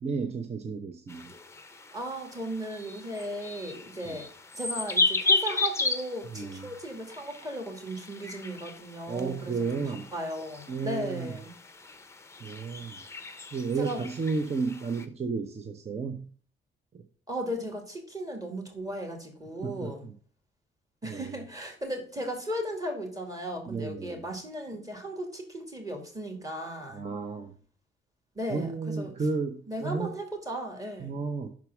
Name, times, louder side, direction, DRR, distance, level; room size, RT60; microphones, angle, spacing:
voice 1, 0.0-1.3 6.3-6.7 9.1-10.1 10.7-11.3 12.4-13.0 13.5-16.3 16.9-17.0 19.6-20.1 21.0-21.4 23.7-24.2 26.9-27.5 28.5-30.2 31.0-31.5, right 4 dB, 30° right, 7 dB, 0.7 m, -33 dB
sound 1, 1.1-15.0, left 3 dB, 15° left, 0.7 m, -34 dB
voice 2, 1.9-4.3 4.5-11.5 13.7-14.0 17.3-20.1 21.0-27.0 28.3-29.1 29.7-31.2, equal, 15° right, 3 dB, 2.3 m, -36 dB
6.0 x 4.6 x 6.0 m, 0.43 s
cardioid pair, 90°, 20 cm